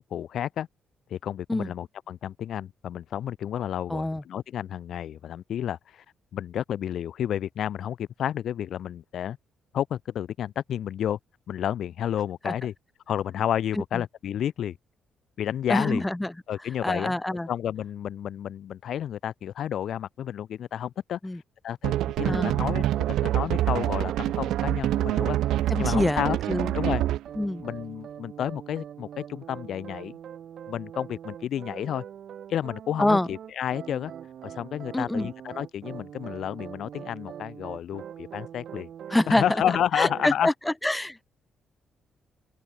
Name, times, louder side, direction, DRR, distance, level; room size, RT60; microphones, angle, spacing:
voice 1, 0.1-0.7 1.1-6.0 6.3-9.4 9.7-11.2 11.5-12.7 13.1-14.8 15.4-16.0 16.5-26.4 26.7-27.0 27.6-30.2 30.7-32.0 32.5-34.1 34.4-38.9 39.3-40.5, left 10 dB, 70° left, 0.8 m, -31 dB
voice 2, 3.9-4.2 12.4-12.5 13.8-14.0 15.7-16.4 16.8-17.5 21.2-21.4 22.2-22.6 25.7-26.2 26.5-26.8 27.4-27.6 33.0-33.3 34.9-35.3 39.1-39.4 40.0-41.2, left 1 dB, 10° left, 1.9 m, -26 dB
sound 1, 21.8-27.4, right 13 dB, 85° right, 1.8 m, -26 dB
sound 2, 22.2-24.6 25.0-40.3, right 9 dB, 60° right, 3.4 m, -42 dB
open air
cardioid pair, 90°, 0 cm